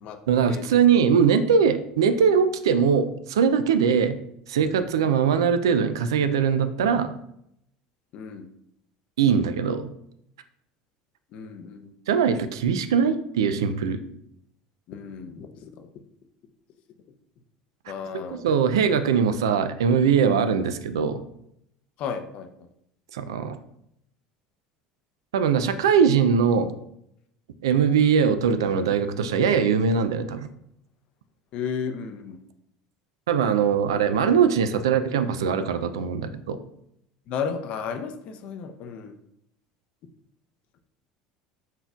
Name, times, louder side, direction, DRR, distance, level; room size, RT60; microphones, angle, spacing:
voice 1, 0.3-4.2 4.5-7.1 9.2-9.9 12.1-14.0 18.3-21.2 23.1-23.6 25.3-26.7 27.6-30.5 33.3-36.6, right 6 dB, 90° right, 11 dB, 0.3 m, -21 dB
voice 2, 8.1-8.5 11.3-11.9 14.9-15.9 17.9-18.5 22.0-22.5 31.5-32.4 37.3-39.2, left 6 dB, 55° left, 7 dB, 0.5 m, -33 dB
4.1 x 4.0 x 2.3 m, 0.75 s
hypercardioid pair, 85°, 2 cm